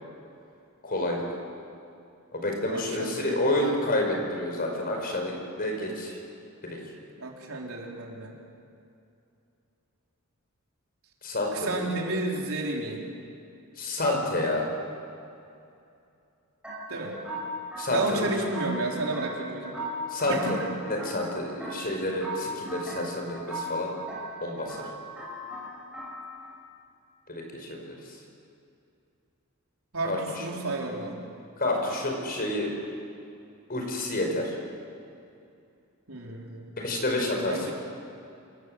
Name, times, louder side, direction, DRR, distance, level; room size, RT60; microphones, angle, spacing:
voice 1, 0.8-1.2 2.3-6.2 6.6-6.8 11.2-11.8 13.8-14.6 17.8-18.3 20.1-23.9 24.4-24.8 27.3-27.9 30.0-30.4 31.6-32.7 33.7-34.5 36.8-37.7, left 1 dB, 45° left, 2 dB, 5.2 m, -29 dB
voice 2, 2.7-3.8 7.2-8.3 11.5-13.0 16.9-17.2 17.9-19.8 20.3-20.6 29.9-31.2 36.1-36.7 37.5-37.7, right 2 dB, 75° right, -1 dB, 4.0 m, -32 dB
sound 1, 16.6-26.5, equal, 5° right, 7.4 m, -38 dB
27.0 x 18.5 x 8.0 m, 2.6 s
head